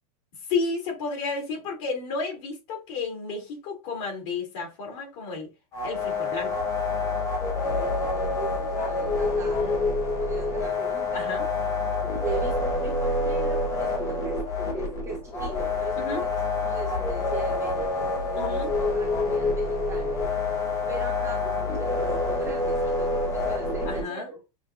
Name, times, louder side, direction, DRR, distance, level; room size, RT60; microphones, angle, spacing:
voice 1, 0.5-5.5 5.8-6.6 9.4-9.8 11.1-11.5 16.0-16.2 18.3-18.7 23.9-24.3, left 4 dB, 50° left, 2.5 m, -32 dB
sound 1, 5.7-24.0, left 3 dB, 15° left, 0.8 m, -27 dB
voice 2, 7.5-9.7 10.0-11.3 12.1-14.4 14.7-20.2 20.9-24.4, right 5 dB, 15° right, 0.6 m, -40 dB
6.2 x 2.5 x 2.5 m
supercardioid pair, 165°, 20 cm